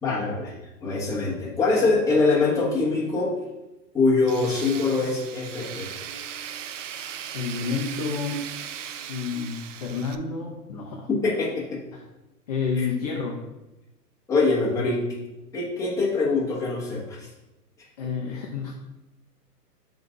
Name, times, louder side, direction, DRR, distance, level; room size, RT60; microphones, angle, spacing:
voice 1, 0.0-3.4 3.9-5.9 11.2-11.8 12.8-12.9 14.3-15.1 15.5-17.3, left 3 dB, 5° left, -4 dB, 1.0 m, -24 dB
Tools, 4.3-10.2, right 9 dB, 50° right, 0.5 m, -38 dB
voice 2, 7.3-8.5 9.1-11.1 11.9-12.0 12.5-13.5 18.0-18.7, left 5 dB, 25° left, 0 dB, 0.5 m, -29 dB
5.7 x 3.9 x 5.3 m, 0.99 s
hypercardioid pair, 140°, 49 cm